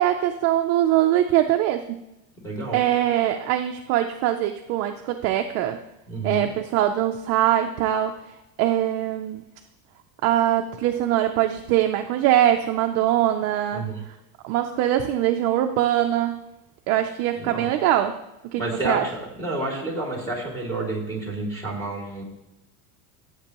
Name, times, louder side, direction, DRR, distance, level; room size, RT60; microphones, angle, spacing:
voice 1, 0.0-2.0 2.7-5.8 6.2-8.2 8.6-9.4 10.2-13.8 14.4-16.4 16.9-18.2 18.5-19.1, right 12 dB, 40° right, 5 dB, 0.4 m, -22 dB
voice 2, 2.4-2.8 6.1-6.5 13.7-14.0 17.3-17.7 18.6-22.2, right 2 dB, 5° left, -1 dB, 2.4 m, -30 dB
15.5 x 8.1 x 2.9 m, 0.90 s
cardioid pair, 165°, 43 cm